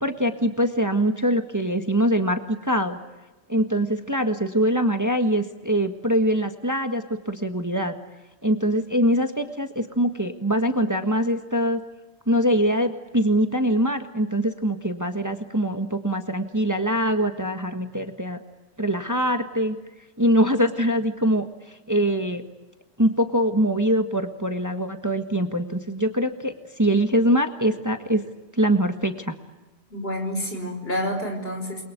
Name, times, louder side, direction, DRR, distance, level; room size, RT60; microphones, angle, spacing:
voice 1, 0.0-3.0 3.5-7.9 8.4-11.8 12.3-18.4 18.8-19.8 20.2-21.4 21.9-22.4 23.0-28.2 28.5-29.3, equal, 15° right, 6 dB, 1.5 m, -23 dB
voice 2, 29.9-31.8, equal, 60° left, 4 dB, 5.6 m, -28 dB
29.5 x 23.0 x 8.2 m, 1.1 s
omnidirectional pair, 1.1 m